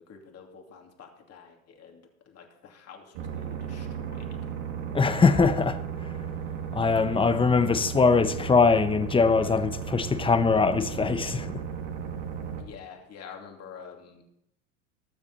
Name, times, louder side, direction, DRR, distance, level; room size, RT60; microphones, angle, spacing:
voice 1, 0.1-4.2 12.6-14.2, left 6 dB, 40° left, 2.7 m, -47 dB
sound 1, 3.1-12.6, right 7 dB, 70° right, 2.4 m, -35 dB
voice 2, 4.9-5.8 6.7-11.5, left 4 dB, 15° left, 0.8 m, -22 dB
19.5 x 7.1 x 4.1 m
hypercardioid pair, 95°, 40 cm